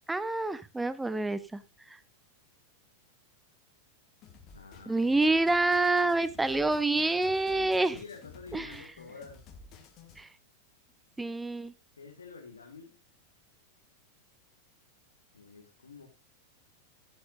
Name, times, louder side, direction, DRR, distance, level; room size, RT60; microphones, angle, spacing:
voice 1, 0.1-1.6 4.9-7.9 8.5-8.7 10.2-10.3 11.2-11.7, right 2 dB, 10° right, 16 dB, 0.7 m, -27 dB
sound 1, 4.2-10.2, left 4 dB, 35° left, 2.3 m, -53 dB
voice 2, 4.5-5.1 6.5-9.4 12.0-13.0 15.3-16.1, left 4 dB, 75° left, 1 dB, 1.9 m, -49 dB
15.0 x 8.6 x 2.7 m, 0.24 s
figure-of-eight pair, 90°, 0 cm